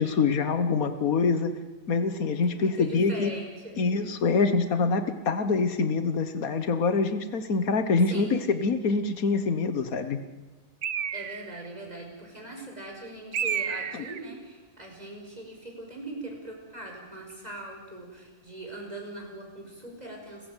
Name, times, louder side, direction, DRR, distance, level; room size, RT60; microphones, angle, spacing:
voice 1, 0.0-1.6 1.9-3.3 3.8-10.2 13.9-14.0, left 4 dB, 90° left, 10 dB, 1.8 m, -25 dB
voice 2, 2.5-4.0 8.1-8.4 11.1-20.5, right 1 dB, 30° right, 1 dB, 6.1 m, -41 dB
Bird, 10.8-11.7 13.3-14.3, right 8 dB, 60° right, 1.2 m, -31 dB
30.0 x 15.5 x 9.1 m, 1.2 s
omnidirectional pair, 1.5 m